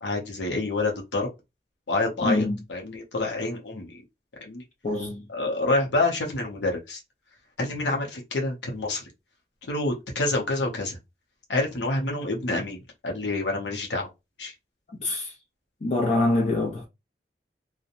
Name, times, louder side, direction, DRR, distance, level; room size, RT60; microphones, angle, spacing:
voice 1, 0.0-1.3 1.9-4.0 4.4-4.6 5.3-7.0 7.6-9.0 9.7-11.0 11.5-14.1 14.4-14.5, left 2 dB, 85° left, 0.7 m, -27 dB
voice 2, 2.2-2.6 4.8-5.2 15.0-15.3 15.8-16.9, left 2 dB, 40° left, 0.5 m, -24 dB
2.8 x 2.1 x 2.5 m
head